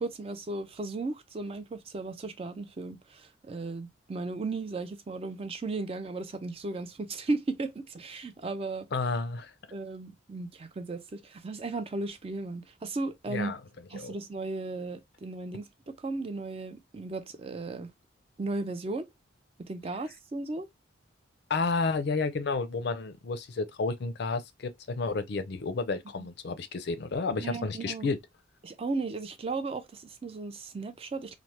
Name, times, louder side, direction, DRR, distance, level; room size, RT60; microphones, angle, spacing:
voice 1, 0.0-8.9 9.7-13.5 13.9-17.9 18.4-19.1 19.6-20.7 27.4-28.1 28.6-31.3, right 3 dB, 30° right, 0.3 m, -35 dB
voice 2, 8.9-9.5 13.3-13.6 13.9-14.2 21.5-28.2, left 4 dB, 55° left, 0.4 m, -31 dB
3.1 x 2.0 x 2.8 m
head